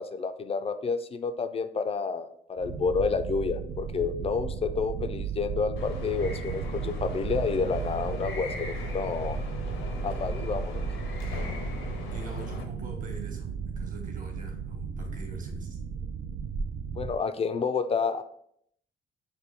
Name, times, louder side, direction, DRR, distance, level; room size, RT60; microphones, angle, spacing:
voice 1, 0.0-9.4 10.0-10.8 17.0-18.2, left 5 dB, 30° left, 11 dB, 0.4 m, -29 dB
sound 1, 2.6-17.2, right 6 dB, 70° right, 0.5 m, -35 dB
sound 2, 5.8-12.6, left 4 dB, 80° left, 0.7 m, -39 dB
voice 2, 12.1-15.8, right 1 dB, 40° right, 2 dB, 1.2 m, -43 dB
5.8 x 2.2 x 3.3 m, 0.69 s
cardioid pair, 90°, 20 cm